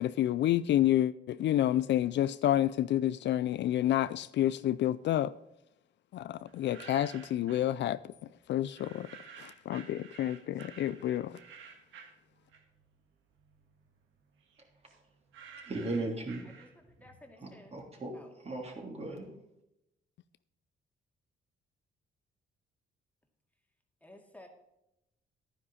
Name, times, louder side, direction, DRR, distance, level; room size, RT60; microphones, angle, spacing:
voice 1, 0.0-5.3 6.1-8.1 8.5-9.1 9.4-11.4, left 12 dB, 65° left, 0.4 m, -29 dB
sound 1, 6.5-7.7 8.7-12.9 13.3-17.0, right 6 dB, 75° right, 1.8 m, -52 dB
voice 2, 15.6-16.5 17.4-18.1 18.4-19.3, right 2 dB, 30° right, 3.2 m, -37 dB
voice 3, 16.4-17.8 18.1-18.4 24.0-24.5, left 1 dB, 5° left, 2.2 m, -55 dB
11.5 x 9.9 x 4.1 m
cardioid pair, 90°, 20 cm